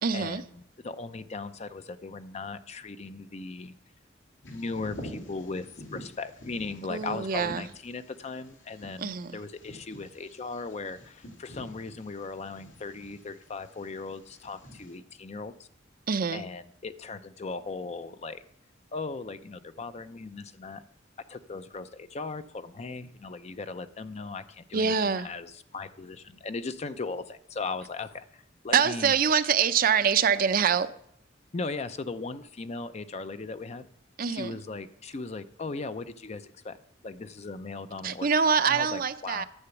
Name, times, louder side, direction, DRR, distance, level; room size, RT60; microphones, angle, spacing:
voice 1, 0.0-0.4 6.9-7.7 9.0-9.4 16.1-16.4 24.7-25.3 28.7-30.9 34.2-34.6 38.0-39.4, right 6 dB, 50° right, 12 dB, 0.5 m, -25 dB
voice 2, 0.8-3.7 4.5-15.5 16.3-18.4 18.9-20.8 21.3-29.1 31.5-33.9 34.2-36.8 37.0-39.4, left 3 dB, 35° left, 12 dB, 0.5 m, -38 dB
Bird vocalization bird call bird song, 4.4-15.0, equal, 85° left, 2.7 m, -47 dB
9.8 x 6.9 x 7.0 m, 0.70 s
head